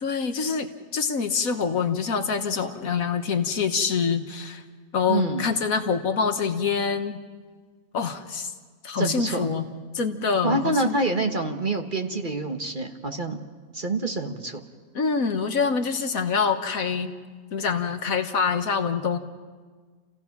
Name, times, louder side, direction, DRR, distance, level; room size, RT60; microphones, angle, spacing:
voice 1, 0.0-4.6 4.9-7.2 7.9-8.5 8.8-9.7 9.9-10.9 14.9-17.1 17.5-19.2, left 5 dB, 70° left, 7 dB, 1.6 m, -25 dB
voice 2, 5.1-5.5 9.0-9.5 10.4-13.4 13.7-14.6, right 2 dB, 35° right, 4 dB, 1.3 m, -26 dB
30.0 x 16.0 x 5.9 m, 1.5 s
omnidirectional pair, 1.6 m